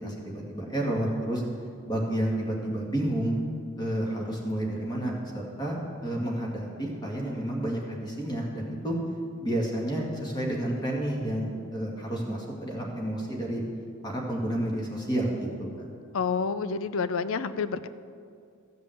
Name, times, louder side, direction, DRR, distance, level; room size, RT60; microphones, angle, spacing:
voice 1, 0.0-1.4 1.9-3.3 3.8-5.8 6.0-9.0 9.4-13.6 14.0-15.9, right 1 dB, 20° left, -2 dB, 1.8 m, -30 dB
voice 2, 16.1-17.9, left 5 dB, 70° left, 13 dB, 0.5 m, -29 dB
14.0 x 5.4 x 7.9 m, 2.3 s
head